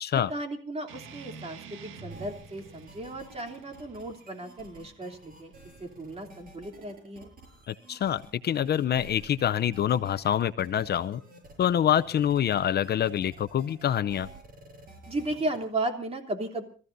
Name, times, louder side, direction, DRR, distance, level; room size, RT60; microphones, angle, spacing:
voice 1, 0.1-5.5 5.8-7.3 15.1-16.6, right 2 dB, 30° right, 4 dB, 3.2 m, -35 dB
sound 1, 0.9-5.9, right 4 dB, 90° right, 1.7 m, -48 dB
sound 2, 2.1-15.6, right 2 dB, 45° right, 7.0 m, -51 dB
voice 2, 7.7-11.2 11.6-14.3, left 10 dB, 55° left, 15 dB, 0.6 m, -26 dB
29.0 x 14.5 x 2.7 m, 0.40 s
cardioid pair, 90°, 20 cm